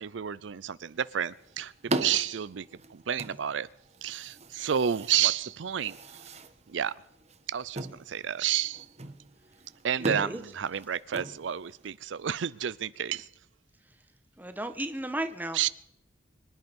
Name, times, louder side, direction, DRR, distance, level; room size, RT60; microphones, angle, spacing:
voice 1, 0.0-2.7 2.9-3.7 4.0-6.0 6.7-6.9 7.5-8.9 9.8-13.3 15.5-15.7, right 9 dB, 75° right, 17 dB, 0.5 m, -30 dB
sound 1, 0.9-12.0, right 2 dB, 35° right, 1.4 m, -40 dB
voice 2, 10.0-10.4 14.4-15.7, right 1 dB, 10° right, 8 dB, 1.3 m, -34 dB
25.0 x 10.5 x 5.4 m, 0.82 s
head